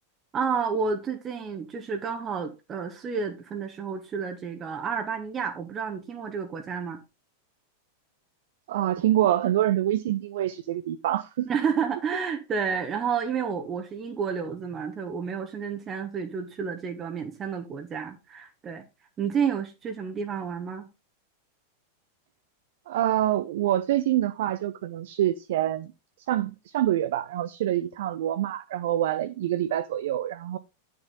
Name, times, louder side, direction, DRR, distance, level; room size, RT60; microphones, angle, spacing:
voice 1, 0.3-7.0 11.4-18.8 19.2-20.9, right 6 dB, 25° right, 1.3 m, -30 dB
voice 2, 8.7-11.5 22.9-25.9 26.3-30.6, right 12 dB, 55° right, 0.6 m, -26 dB
10.0 x 6.7 x 4.0 m
figure-of-eight pair, 90°, 0 cm